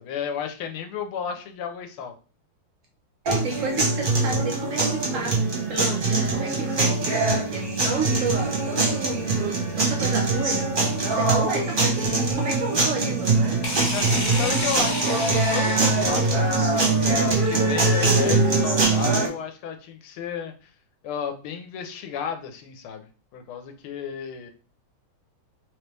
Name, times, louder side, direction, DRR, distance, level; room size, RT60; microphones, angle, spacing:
voice 1, 0.0-2.1 11.1-11.5 13.9-20.7 21.0-23.1 23.3-24.5, left 7 dB, 85° left, 5 dB, 1.6 m, -33 dB
voice 2, 3.2-10.6 11.1-13.6, right 3 dB, 75° right, 1 dB, 0.7 m, -31 dB
sound 1, 3.3-19.3, right 3 dB, 40° right, 0.7 m, -23 dB
sound 2, 13.6-16.5, left 1 dB, 45° left, 1.2 m, -30 dB
3.8 x 3.0 x 3.3 m, 0.35 s
omnidirectional pair, 2.3 m